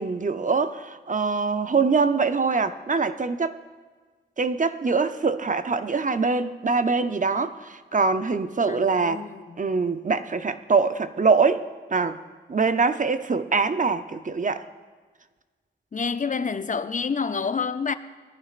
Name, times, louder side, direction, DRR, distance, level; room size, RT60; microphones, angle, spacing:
voice 1, 0.0-3.6 4.4-9.2 9.6-12.2 12.5-14.7, right 4 dB, 40° right, 0.6 m, -24 dB
voice 2, 8.7-9.6 15.9-17.9, left 5 dB, 40° left, 0.5 m, -28 dB
19.0 x 11.0 x 2.5 m
cardioid pair, 50°, 19 cm